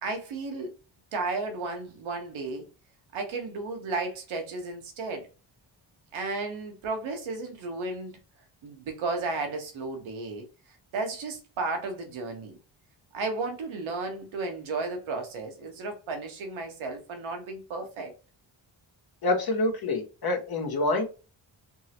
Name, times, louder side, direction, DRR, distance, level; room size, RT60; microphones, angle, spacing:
voice 1, 0.0-0.7 1.1-2.6 3.1-5.3 6.1-8.1 8.6-10.5 10.9-12.6 13.1-18.1, right 3 dB, 85° right, 1.1 m, -33 dB
voice 2, 19.2-21.0, left 2 dB, 50° left, 1.2 m, -26 dB
3.7 x 2.1 x 2.8 m
cardioid pair, 70°, 47 cm